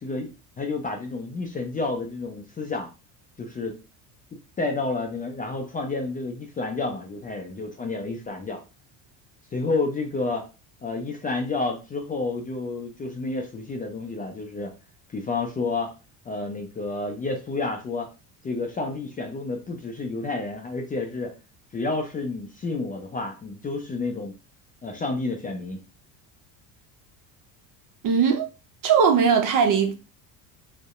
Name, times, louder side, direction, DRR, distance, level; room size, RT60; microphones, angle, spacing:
voice 1, 0.0-2.9 3.4-3.8 4.6-8.6 9.5-10.5 10.8-14.7 15.1-15.9 16.3-18.1 18.4-21.3 21.7-24.3 24.8-25.8, left 3 dB, 20° left, 0.4 m, -30 dB
voice 2, 28.0-28.5 28.8-29.9, right 6 dB, 45° right, 0.6 m, -19 dB
2.6 x 2.1 x 2.4 m
supercardioid pair, 90°, 45 cm